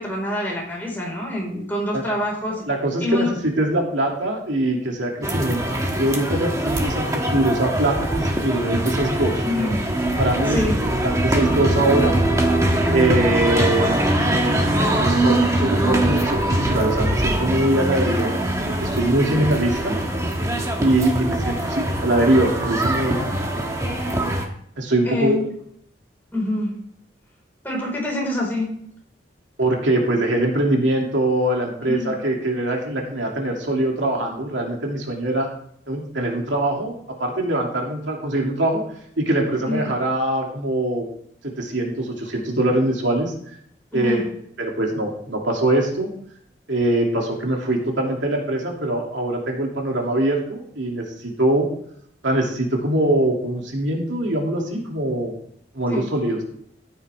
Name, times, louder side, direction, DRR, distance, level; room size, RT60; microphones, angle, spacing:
voice 1, 0.0-2.7 3.0-3.3 9.4-9.8 10.4-10.8 19.2-19.4 25.0-25.4 26.3-26.7 27.6-28.8 31.8-32.1 39.6-39.9 43.9-44.3 55.9-56.1, left 1 dB, 10° left, -3 dB, 4.7 m, -26 dB
voice 2, 2.7-9.4 10.2-10.7 11.0-12.2 12.9-14.0 14.9-18.3 18.8-20.0 20.8-23.3 24.8-25.4 29.6-35.5 35.9-36.9 37.2-38.8 39.2-41.1 41.6-43.3 43.9-44.2 44.6-46.1 46.7-51.7 52.2-55.3 55.7-56.4, right 1 dB, 90° right, 0 dB, 2.7 m, -22 dB
sound 1, 5.2-24.4, right 1 dB, 15° right, 1.4 m, -22 dB
14.5 x 9.5 x 3.5 m, 0.67 s
head